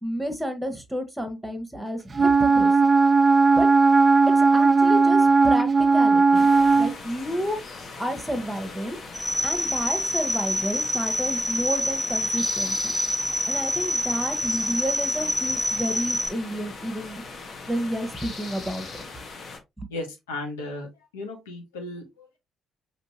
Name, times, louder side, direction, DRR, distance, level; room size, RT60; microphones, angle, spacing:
voice 1, 0.0-2.7 3.6-3.7 4.4-6.5 6.8-9.0 9.4-12.8 13.4-17.2 17.7-18.9 19.8-19.9, equal, 5° right, 1.2 m, -31 dB
Wind instrument woodwind instrument, 2.2-7.0, right 4 dB, 30° right, 0.4 m, -17 dB
sound 1, 6.3-19.6, left 4 dB, 45° left, 1.0 m, -40 dB
sound 2, 9.1-16.3, equal, 15° left, 1.3 m, -27 dB
voice 2, 19.9-20.9 21.1-22.4, left 2 dB, 75° left, 1.1 m, -35 dB
5.2 x 2.8 x 2.9 m
figure-of-eight pair, 45°, 0 cm